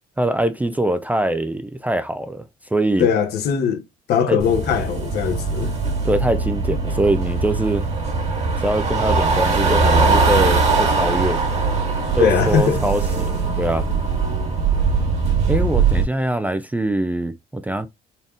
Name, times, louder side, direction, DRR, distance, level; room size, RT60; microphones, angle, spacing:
voice 1, 0.2-2.4 2.7-3.1 4.3-4.4 6.0-7.9 8.6-11.4 12.2-13.9 15.5-17.9, right 1 dB, 10° right, 0.4 m, -23 dB
voice 2, 3.0-3.8 4.1-5.8 12.2-12.8, left 7 dB, 70° left, 1.2 m, -20 dB
sound 1, 4.4-16.0, right 4 dB, 40° right, 1.8 m, -20 dB
4.2 x 3.5 x 2.4 m
cardioid pair, 110°, 17 cm